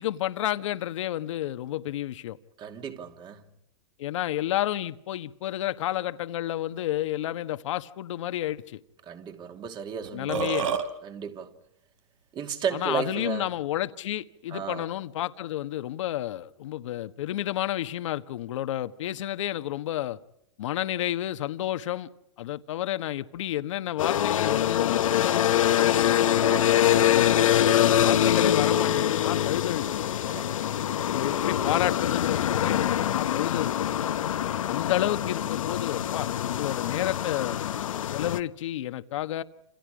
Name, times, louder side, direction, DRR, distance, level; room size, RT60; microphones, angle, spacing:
voice 1, 0.0-2.4 4.0-8.8 10.1-10.7 12.7-20.2 20.6-22.1 22.4-26.3 27.1-30.3 31.1-33.9 34.7-37.6 38.1-39.4, left 13 dB, 65° left, 1.4 m, -31 dB
voice 2, 2.6-3.4 9.1-10.5 11.0-11.5 12.3-13.5 14.5-14.9 26.4-27.0 30.3-30.9, right 7 dB, 30° right, 2.8 m, -34 dB
Burping eructation, 10.0-10.8, right 6 dB, 75° right, 3.5 m, -27 dB
sound 1, 24.0-38.4, left 10 dB, 80° left, 1.2 m, -24 dB
29.0 x 28.0 x 5.1 m
hypercardioid pair, 130°, 17 cm